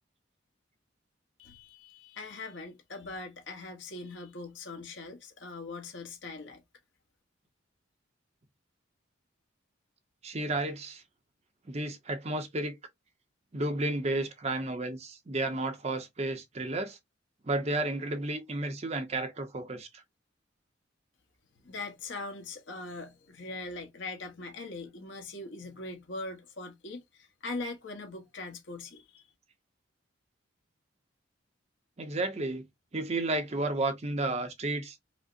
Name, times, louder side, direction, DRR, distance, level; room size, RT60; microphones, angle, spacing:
voice 1, 1.4-6.6 21.6-29.2, left 3 dB, 70° left, 1.0 m, -41 dB
voice 2, 10.2-11.0 11.7-12.8 13.5-17.0 17.4-20.0 32.0-32.7 32.9-35.0, right 2 dB, 35° right, 0.6 m, -32 dB
4.9 x 2.0 x 2.4 m
head